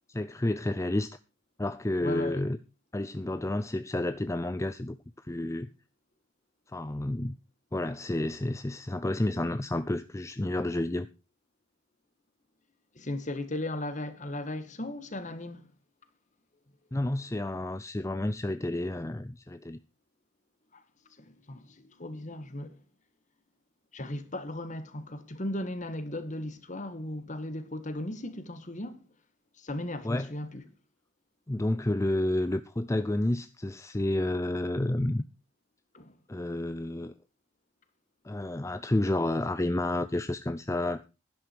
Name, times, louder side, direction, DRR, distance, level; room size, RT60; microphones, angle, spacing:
voice 1, 0.1-1.2 1.6-2.6 2.9-5.7 6.7-7.4 7.7-11.1 16.9-19.8 30.0-30.3 31.5-35.2 36.3-37.1 38.2-41.0, left 1 dB, 15° left, 0.5 m, -30 dB
voice 2, 2.0-2.4 12.9-15.6 20.7-20.8 21.2-22.8 23.9-29.0 29.6-30.6 35.9-36.1, left 1 dB, 40° left, 1.7 m, -36 dB
11.5 x 11.0 x 4.5 m
head